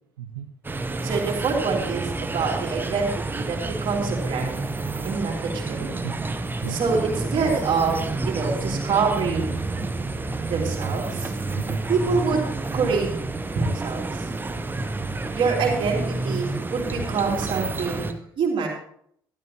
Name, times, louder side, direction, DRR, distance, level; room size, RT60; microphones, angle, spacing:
sound 1, 0.6-18.1, right 3 dB, 15° right, 0.9 m, -29 dB
voice 1, 1.0-4.6 5.0-6.1 6.7-9.6 10.5-11.3 11.9-12.4 12.7-13.1 13.5-14.3 15.3-18.7, right 5 dB, 45° right, -1 dB, 3.1 m, -26 dB
voice 2, 11.5-11.8 14.6-15.4 18.1-18.2, right 10 dB, 75° right, 4 dB, 0.6 m, -38 dB
12.5 x 12.0 x 2.9 m, 0.69 s
figure-of-eight pair, 50°, 12 cm